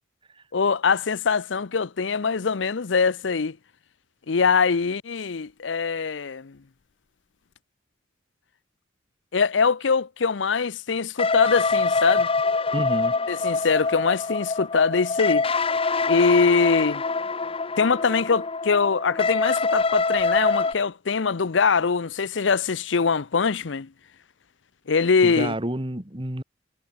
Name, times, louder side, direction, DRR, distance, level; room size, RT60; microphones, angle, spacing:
voice 1, 0.5-3.6 4.3-6.6 9.3-12.3 13.3-15.5 16.1-17.0 17.8-23.9 24.9-25.5, left 5 dB, 75° left, 0.7 m, -22 dB
sound 1, 11.2-20.7, left 4 dB, 30° left, 1.1 m, -25 dB
voice 2, 12.7-13.1 25.2-26.4, right 1 dB, 30° right, 2.8 m, -29 dB
head